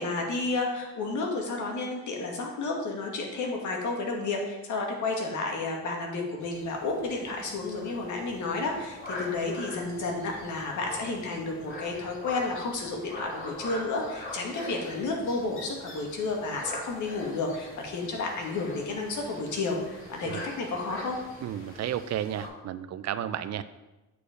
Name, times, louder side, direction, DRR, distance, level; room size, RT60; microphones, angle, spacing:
voice 1, 0.0-21.2, left 3 dB, 75° left, 0 dB, 1.9 m, -31 dB
sound 1, 6.4-22.5, left 1 dB, 40° left, 2.8 m, -43 dB
voice 2, 21.4-23.6, right 10 dB, 60° right, 13 dB, 0.5 m, -32 dB
8.4 x 4.9 x 5.1 m, 1.1 s
cardioid pair, 90°, 30 cm